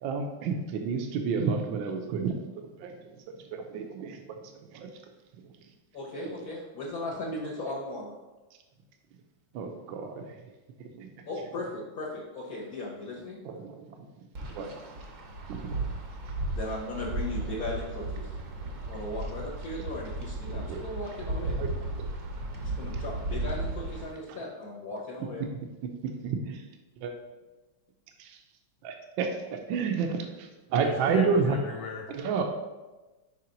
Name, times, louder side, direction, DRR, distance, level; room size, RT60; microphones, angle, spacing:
voice 1, 0.0-2.9 3.5-4.2 4.7-4.9 6.2-6.3 9.5-10.3 10.8-11.1 13.4-14.0 14.5-14.7 15.5-15.6 20.5-20.8 21.6-21.7 22.0-22.1 24.3-24.4 26.2-26.6 27.0-27.1 28.2-28.4 28.8-31.6 32.1-32.4, right 5 dB, 75° right, 4 dB, 1.3 m, -30 dB
voice 2, 5.9-8.2 11.3-13.4 16.5-18.3 18.9-21.6 22.6-25.4, left 2 dB, 55° left, -4 dB, 1.2 m, -37 dB
Wind, 14.3-24.1, right 2 dB, 55° right, 0.9 m, -35 dB
voice 3, 30.8-32.2, left 5 dB, 75° left, 2 dB, 1.4 m, -39 dB
5.8 x 3.4 x 5.1 m, 1.1 s
omnidirectional pair, 2.3 m